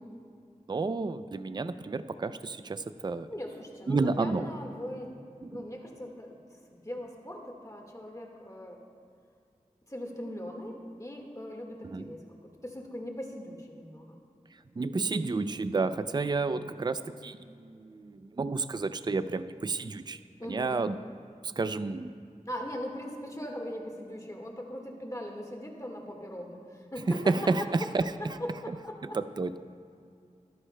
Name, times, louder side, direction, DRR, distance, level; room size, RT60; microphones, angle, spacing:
voice 1, 0.7-3.3 3.9-4.5 5.4-5.6 11.8-12.1 14.8-20.2 20.5-21.0 21.4-22.1 27.3-28.0 28.7-28.8 29.1-29.6, right 3 dB, 35° right, 12 dB, 0.4 m, -31 dB
voice 2, 3.3-5.1 5.5-8.8 9.9-14.2 20.4-20.8 22.5-27.9 28.2-29.2, left 1 dB, 25° left, 1 dB, 1.6 m, -40 dB
23.0 x 11.0 x 2.2 m, 2.4 s
wide cardioid pair, 70°, 14 cm